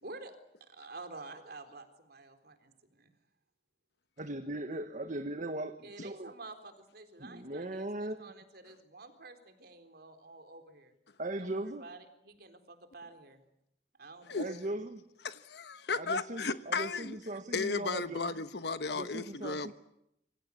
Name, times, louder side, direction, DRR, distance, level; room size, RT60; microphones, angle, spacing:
voice 1, 0.0-3.1 5.8-10.9 11.4-13.4 14.0-14.6, right 2 dB, 60° right, 4.0 m, -50 dB
voice 2, 4.2-6.3 7.2-8.3 11.2-11.8 14.3-15.0 15.9-18.3 18.9-19.7, right 1 dB, 45° right, 1.5 m, -39 dB
voice 3, 15.2-17.2 17.5-19.7, left 4 dB, 70° left, 1.2 m, -34 dB
27.0 x 24.5 x 8.5 m
head